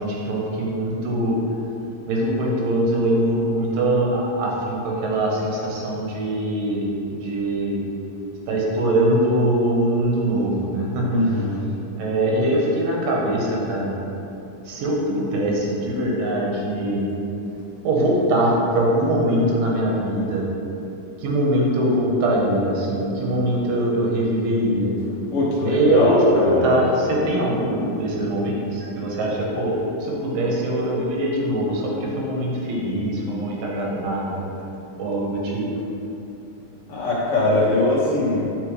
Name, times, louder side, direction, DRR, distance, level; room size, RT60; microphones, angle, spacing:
voice 1, 0.0-1.4 2.1-7.8 8.5-11.4 12.0-13.9 14.7-17.1 17.8-20.5 21.2-24.9 25.6-29.7 30.0-34.4 35.0-35.7, right 1 dB, 85° right, -3 dB, 2.7 m, -22 dB
voice 2, 11.1-11.7 25.3-26.8 36.9-38.4, left 2 dB, 65° left, -7 dB, 1.4 m, -21 dB
7.5 x 4.5 x 3.2 m, 2.9 s
omnidirectional pair, 3.9 m